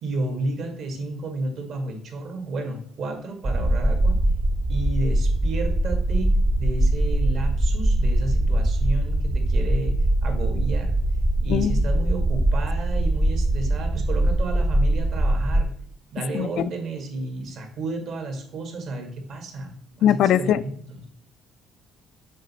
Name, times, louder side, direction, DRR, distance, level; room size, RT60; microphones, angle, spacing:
voice 1, 0.0-4.2 4.7-10.9 11.4-15.7 16.1-21.1, right 2 dB, 60° right, 4 dB, 1.7 m, -32 dB
sound 1, 3.4-15.6, right 1 dB, 20° right, 0.5 m, -22 dB
voice 2, 11.5-11.8 16.3-16.7 20.0-20.6, left 10 dB, 65° left, 15 dB, 0.3 m, -21 dB
6.5 x 4.1 x 4.1 m, 0.67 s
cardioid pair, 115°, 0 cm